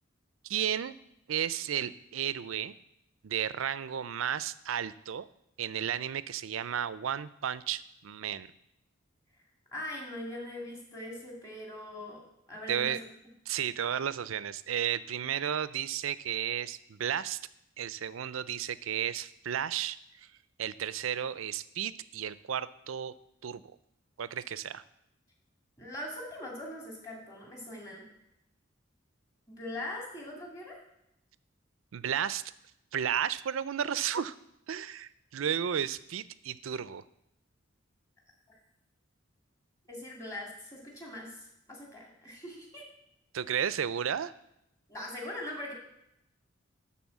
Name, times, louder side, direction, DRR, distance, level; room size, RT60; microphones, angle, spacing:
voice 1, 0.4-0.9 1.3-2.7 3.2-5.3 5.6-8.5 12.7-13.0 13.5-17.4 17.8-20.3 20.6-23.1 23.4-23.6 24.2-24.8 31.9-32.4 32.9-34.3 34.7-37.0 43.3-44.3, right 9 dB, 85° right, 16 dB, 0.4 m, -33 dB
voice 2, 9.7-13.0 25.8-28.1 29.5-30.8 39.9-42.8 44.9-45.7, left 1 dB, 15° left, -2 dB, 2.5 m, -41 dB
11.5 x 4.3 x 7.2 m, 0.82 s
head